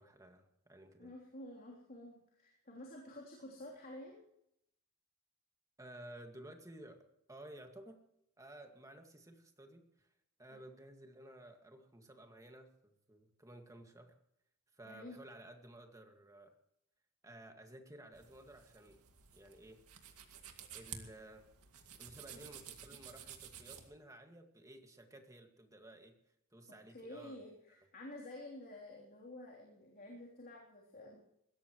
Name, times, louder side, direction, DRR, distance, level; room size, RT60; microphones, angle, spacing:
voice 1, 0.0-1.2 5.8-8.0 8.4-10.1 10.4-14.2 14.7-16.6 17.2-19.0 19.3-19.8 20.7-21.5 22.0-26.2 26.5-27.4, right 1 dB, 15° right, 4 dB, 1.9 m, -55 dB
voice 2, 1.0-4.2 14.8-15.2 22.3-22.5 26.9-31.2, left 1 dB, 40° left, -3 dB, 3.4 m, -51 dB
sound 1, 18.1-23.9, right 8 dB, 90° right, 2.2 m, -53 dB
21.5 x 17.0 x 3.1 m, 0.76 s
head